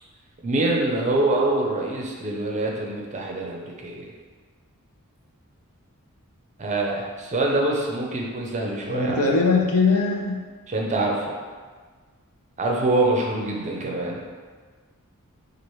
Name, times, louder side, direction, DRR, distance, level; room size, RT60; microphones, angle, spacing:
voice 1, 0.4-4.0 6.6-9.2 10.7-11.3 12.6-14.2, right 2 dB, 35° right, -1 dB, 0.5 m, -25 dB
voice 2, 8.9-10.4, left 4 dB, 75° left, 0 dB, 0.6 m, -21 dB
4.5 x 2.5 x 3.0 m, 1.5 s
head